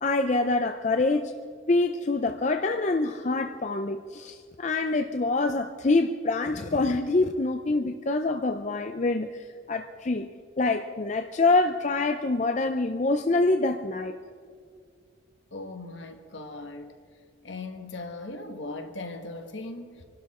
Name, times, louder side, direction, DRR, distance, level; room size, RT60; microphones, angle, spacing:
voice 1, 0.0-1.3 1.7-10.3 10.6-14.1, left 3 dB, 35° left, 0.5 m, -25 dB
voice 2, 15.5-16.9 17.4-20.1, left 2 dB, 70° left, 1.6 m, -38 dB
25.5 x 12.0 x 4.3 m
head